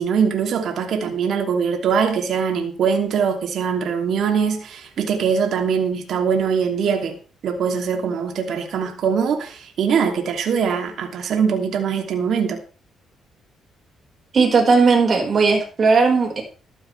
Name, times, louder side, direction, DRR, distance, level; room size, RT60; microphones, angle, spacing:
voice 1, 0.0-7.2 7.4-12.6, right 6 dB, 65° right, 2.8 m, -22 dB
voice 2, 14.3-16.4, right 4 dB, 45° right, 5.0 m, -16 dB
14.5 x 13.5 x 3.4 m
cardioid pair, 90°, 0 cm